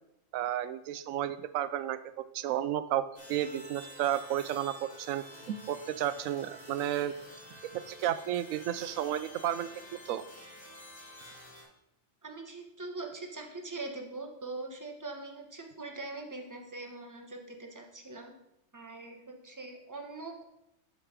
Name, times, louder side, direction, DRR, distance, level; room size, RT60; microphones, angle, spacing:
voice 1, 0.3-7.1 7.7-10.2, right 11 dB, 85° right, 14 dB, 1.0 m, -32 dB
sound 1, 3.1-11.6, equal, 20° left, 2.7 m, -50 dB
voice 2, 12.2-18.3 18.7-20.4, right 3 dB, 15° right, 2 dB, 1.0 m, -42 dB
7.7 x 6.7 x 4.9 m, 0.84 s
omnidirectional pair, 1.4 m